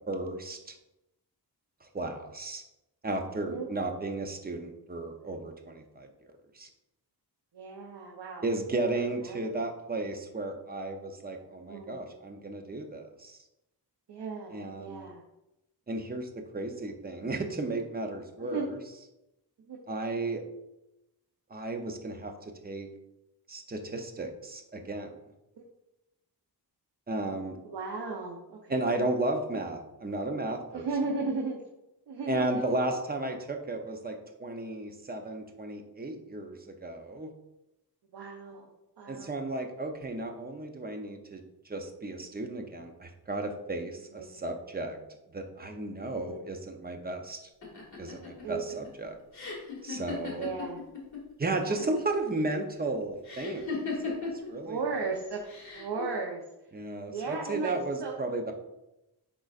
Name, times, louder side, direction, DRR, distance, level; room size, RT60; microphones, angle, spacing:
voice 1, 0.1-0.7 1.8-2.6 3.0-6.1 6.5-6.7 8.4-13.4 14.5-15.1 15.9-18.8 19.9-20.4 21.5-22.3 22.6-22.9 23.5-25.1 27.1-27.6 28.7-30.9 32.3-37.3 39.1-45.0 45.3-47.4 48.0-49.2 49.8-50.5 51.4-53.7 54.0-54.8 56.7-58.5, right 2 dB, 25° right, 4 dB, 0.6 m, -34 dB
voice 2, 7.5-8.5 9.2-9.4 11.7-12.0 14.1-15.2 18.4-18.7 19.7-19.8 25.6-25.7 27.6-28.8 30.7-31.6 32.1-32.7 38.1-38.7 39.0-39.3 44.1-44.5 46.0-46.4 48.4-48.7 50.4-50.8 51.6-51.8 54.2-54.3 54.6-55.5 55.7-56.4 57.1-58.2, right 4 dB, 80° right, -1 dB, 0.8 m, -35 dB
sound 1, 47.6-51.2 51.5-52.1 53.2-54.5 55.4-56.0, left 4 dB, 45° left, 1.8 m, -37 dB
10.5 x 3.8 x 2.4 m, 0.93 s
wide cardioid pair, 170°, 40 cm